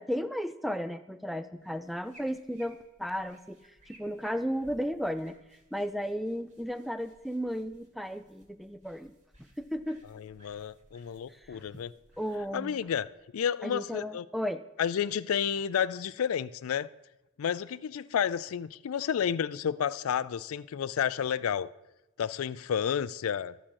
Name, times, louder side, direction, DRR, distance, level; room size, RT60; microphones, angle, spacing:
voice 1, 0.0-3.6 3.9-5.4 5.7-9.1 9.6-10.0 11.5-11.6 12.2-12.8 13.6-14.6, equal, ahead, 0.4 m, -34 dB
sound 1, 1.6-13.5, right 1 dB, 35° right, 2.2 m, -61 dB
voice 2, 10.1-11.9 12.5-13.1 13.3-14.3 14.8-16.9 17.4-21.7 22.2-23.6, left 8 dB, 80° left, 0.4 m, -31 dB
13.0 x 6.1 x 6.4 m
head